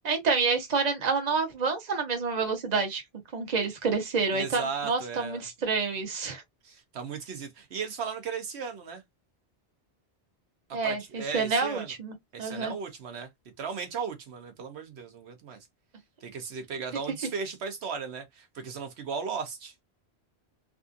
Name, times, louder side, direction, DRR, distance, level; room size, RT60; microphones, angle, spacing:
voice 1, 0.0-3.0 3.3-6.4 10.7-12.7, right 4 dB, 40° right, 1.0 m, -28 dB
voice 2, 4.3-5.4 6.6-9.0 10.7-11.9 12.3-13.3 13.6-15.6 16.2-19.7, right 5 dB, 75° right, 1.0 m, -36 dB
3.5 x 2.4 x 2.5 m
omnidirectional pair, 1.1 m